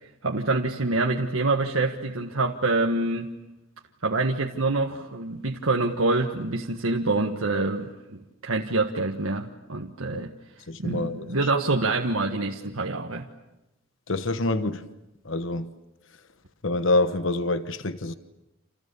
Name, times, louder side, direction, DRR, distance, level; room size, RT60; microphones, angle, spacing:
voice 1, 0.0-3.3 4.0-10.3 10.8-13.3, right 2 dB, 80° right, 1.6 m, -26 dB
voice 2, 10.7-11.2 14.1-14.8 15.3-15.7 16.6-18.1, left 2 dB, 65° left, 1.2 m, -26 dB
29.5 x 28.5 x 7.0 m
head